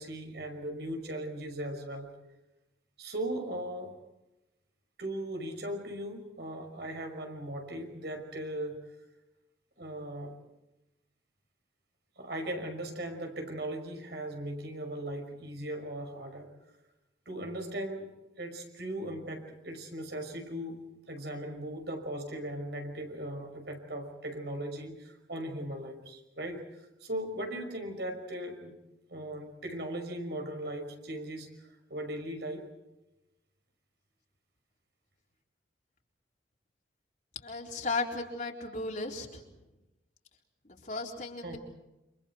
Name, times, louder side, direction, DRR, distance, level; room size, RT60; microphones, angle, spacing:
voice 1, 0.0-2.1 3.0-3.9 5.0-8.8 9.8-10.3 12.2-16.5 17.3-18.1 18.4-28.7 29.1-31.5 31.9-32.7 41.4-41.6, right 1 dB, 65° right, 4 dB, 5.6 m, -38 dB
voice 2, 37.4-39.4 40.8-41.6, left 3 dB, 45° left, 0 dB, 4.0 m, -35 dB
29.5 x 27.0 x 4.6 m, 0.98 s
head